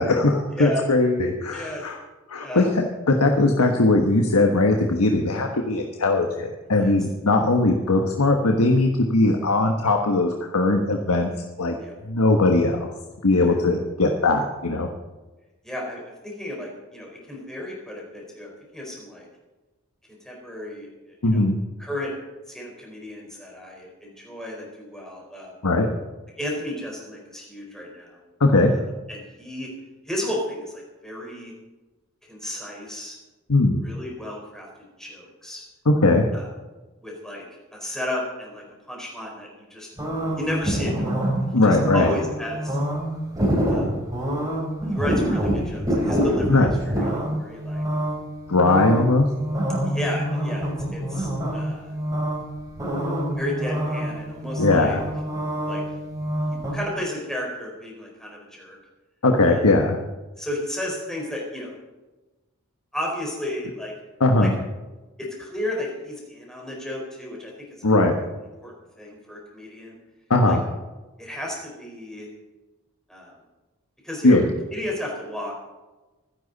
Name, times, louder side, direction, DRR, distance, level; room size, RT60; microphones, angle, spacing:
voice 1, 0.0-2.0 2.3-11.3 11.6-11.7 12.0-12.9 13.2-14.9 21.2-21.6 25.6-25.9 28.4-28.7 33.5-33.8 35.8-36.3 41.5-42.1 46.5-46.7 48.5-49.3 54.6-55.0 59.2-60.0 64.2-64.6 67.8-68.2 70.3-70.6 74.2-74.5, left 2 dB, 90° left, 3 dB, 1.3 m, -19 dB
voice 2, 1.5-1.8 2.4-2.7 6.8-6.9 11.8-11.9 13.4-13.5 15.6-19.3 20.2-20.9 21.2-21.4 21.8-22.1 22.5-25.5 26.4-28.1 29.1-29.7 30.1-31.5 32.3-33.2 33.8-34.7 35.0-35.6 36.3-36.5 37.0-37.4 37.7-39.9 40.4-41.2 41.6-42.8 43.7-43.9 44.9-47.8 48.7-48.8 49.9-51.9 53.4-55.0 55.6-55.8 56.7-58.8 59.5-59.6 60.4-61.8 62.9-63.9 64.4-64.5 65.2-67.5 67.8-67.9 68.6-68.7 69.0-69.9 70.4-70.6 71.2-72.3 73.1-73.3 74.0-74.4 74.7-75.5, left 1 dB, ahead, -2 dB, 4.5 m, -33 dB
sound 1, 40.0-56.7, equal, 15° right, 4.3 m, -26 dB
25.0 x 10.5 x 4.1 m, 1.2 s
head